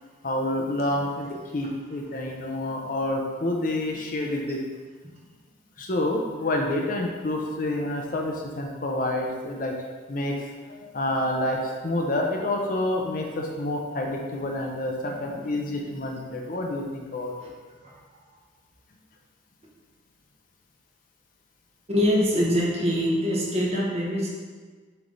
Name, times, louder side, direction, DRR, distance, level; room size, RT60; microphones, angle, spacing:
voice 1, 0.2-4.6 5.8-9.7 10.1-10.4 10.8-17.3, left 1 dB, 45° left, 1 dB, 0.6 m, -28 dB
voice 2, 21.9-24.3, equal, 30° right, -4 dB, 1.1 m, -24 dB
7.2 x 3.4 x 3.9 m, 1.4 s
head